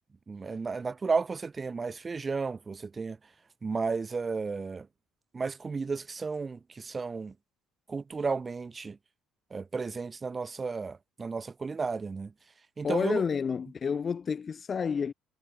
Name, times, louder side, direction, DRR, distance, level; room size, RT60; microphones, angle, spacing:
voice 1, 0.3-3.2 3.6-4.9 5.3-7.3 7.9-9.0 9.5-12.3 12.8-13.2, right 4 dB, 25° right, 6.2 m, -33 dB
voice 2, 12.8-15.1, left 6 dB, 30° left, 7.7 m, -30 dB
cardioid pair, 120°, 0 cm